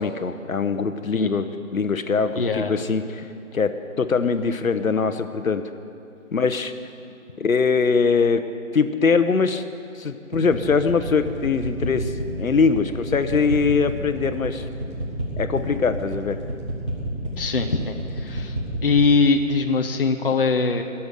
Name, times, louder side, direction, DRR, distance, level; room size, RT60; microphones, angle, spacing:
voice 1, 0.0-1.5 1.7-3.3 3.5-5.6 6.3-6.7 7.4-8.4 8.7-9.6 9.9-12.1 12.4-14.6 15.4-16.4, left 5 dB, 75° left, 10 dB, 0.9 m, -22 dB
voice 2, 2.4-2.7 17.4-18.6 18.8-20.8, left 4 dB, 40° left, 4 dB, 0.8 m, -21 dB
sound 1, 10.3-18.9, right 1 dB, 20° right, 1.8 m, -29 dB
21.0 x 7.1 x 6.6 m, 2.7 s
figure-of-eight pair, 170°, 42 cm